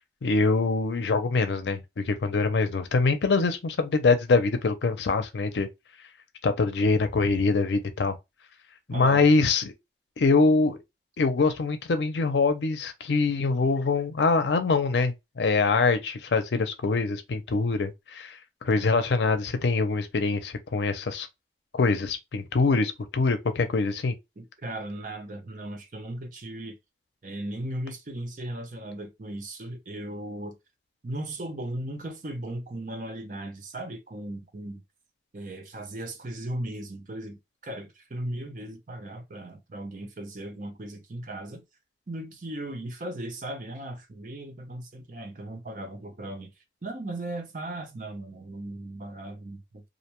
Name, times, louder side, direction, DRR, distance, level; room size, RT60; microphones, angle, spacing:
voice 1, 0.2-5.7 6.4-8.2 8.9-9.7 10.2-10.8 11.2-21.3 21.7-24.1, left 3 dB, 80° left, 0.5 m, -24 dB
voice 2, 8.9-9.2 24.4-26.8 27.2-30.6 31.0-34.8 35.3-41.6 42.1-46.5 46.8-49.9, right 1 dB, 45° right, 0.6 m, -37 dB
2.5 x 2.1 x 2.9 m
head